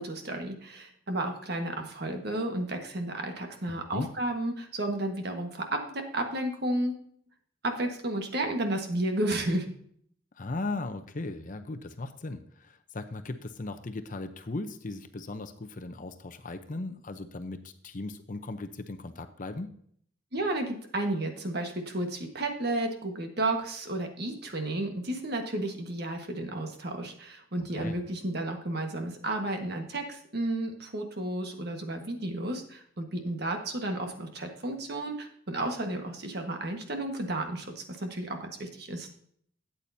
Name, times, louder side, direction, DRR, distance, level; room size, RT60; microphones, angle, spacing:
voice 1, 0.0-7.0 7.6-9.7 20.3-39.1, right 1 dB, 50° right, 4 dB, 1.5 m, -32 dB
voice 2, 3.7-4.1 10.4-19.8 27.7-28.0, left 2 dB, 40° left, 8 dB, 0.7 m, -37 dB
13.0 x 8.7 x 2.7 m, 0.63 s
head